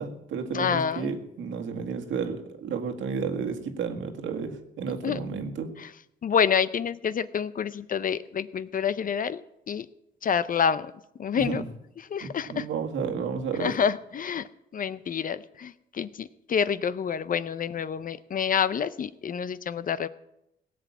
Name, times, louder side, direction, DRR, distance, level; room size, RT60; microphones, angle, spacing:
voice 1, 0.0-5.7 11.4-11.7 12.2-13.7, right 5 dB, 75° right, 4 dB, 1.8 m, -32 dB
voice 2, 0.5-1.1 5.0-5.2 6.2-9.4 9.7-9.9 10.2-10.9 11.2-11.6 12.1-12.7 13.6-14.5 14.7-20.1, left 7 dB, 45° left, 15 dB, 0.6 m, -27 dB
17.0 x 6.1 x 8.4 m, 0.83 s
cardioid pair, 90°, 20 cm